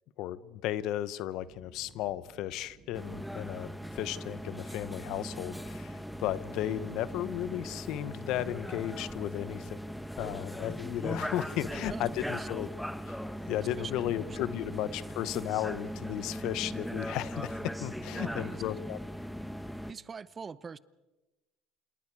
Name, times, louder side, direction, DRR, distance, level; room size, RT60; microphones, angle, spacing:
voice 1, 0.2-9.8 10.2-12.7 13.1-13.2 13.5-19.0, left 13 dB, 70° left, 16 dB, 1.0 m, -35 dB
sound 1, 1.4-18.3, right 5 dB, 55° right, 4.9 m, -57 dB
sound 2, 2.9-19.9, equal, ahead, 1.1 m, -39 dB
voice 2, 11.7-12.5 13.8-14.4 18.2-18.6 19.9-20.8, right 5 dB, 30° right, 17 dB, 0.9 m, -44 dB
28.5 x 27.5 x 4.8 m, 1.1 s
supercardioid pair, 90°, 0 cm